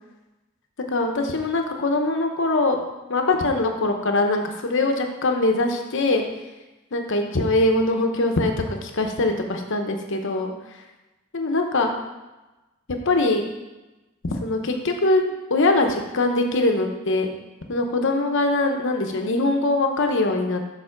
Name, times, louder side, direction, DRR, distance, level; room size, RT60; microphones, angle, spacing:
voice 1, 0.9-2.8 3.1-6.2 6.9-10.8 11.3-11.9 13.0-13.4 14.2-17.3 17.7-20.8, left 2 dB, 60° left, 4 dB, 0.9 m, -22 dB
6.8 x 4.1 x 5.9 m, 1.1 s
head